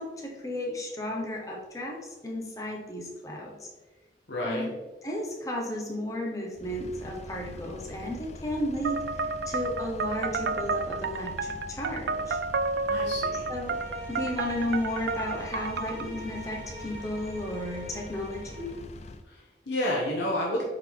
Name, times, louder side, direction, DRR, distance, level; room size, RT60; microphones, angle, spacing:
voice 1, 0.0-3.7 4.4-4.7 5.0-12.4 13.5-13.8 14.1-18.7, left 1 dB, 20° left, -1 dB, 1.1 m, -34 dB
voice 2, 4.3-4.7 12.9-13.5 19.3-20.6, left 1 dB, 90° left, -4 dB, 1.1 m, -30 dB
Engine, 6.6-19.2, left 2 dB, 35° left, 0.3 m, -44 dB
sound 1, 8.8-16.1, right 3 dB, 75° right, 0.3 m, -31 dB
Bowed string instrument, 13.6-18.8, right 1 dB, 55° right, 1.6 m, -44 dB
7.9 x 4.0 x 3.5 m, 1.2 s
head